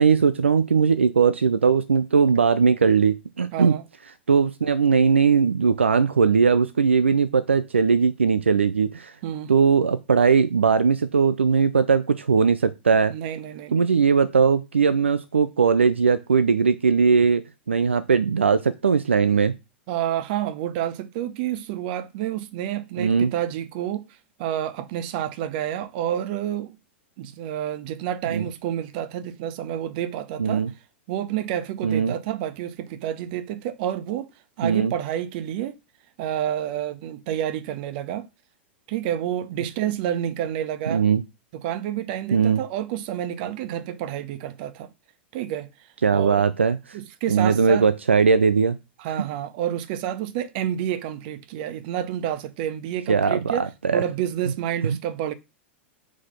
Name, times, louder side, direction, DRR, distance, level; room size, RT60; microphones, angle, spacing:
voice 1, 0.0-3.7 4.3-9.1 9.5-13.1 13.7-19.5 23.0-23.3 28.3-28.5 30.4-30.7 31.8-32.1 34.6-34.9 40.9-41.2 42.3-42.6 46.0-47.0 47.3-48.8 53.1-54.0 54.8-55.0, right 5 dB, 85° right, 0.4 m, -19 dB
voice 2, 3.5-3.8 9.2-9.5 13.1-13.9 19.9-24.1 24.4-26.7 27.2-30.6 31.1-34.3 34.6-35.7 36.2-38.3 38.9-41.0 41.6-44.9 45.3-45.7 46.1-46.4 46.9-47.9 49.0-53.6 53.9-55.3, right 11 dB, 50° right, 0.9 m, -29 dB
4.9 x 4.2 x 5.6 m
figure-of-eight pair, 95°, 6 cm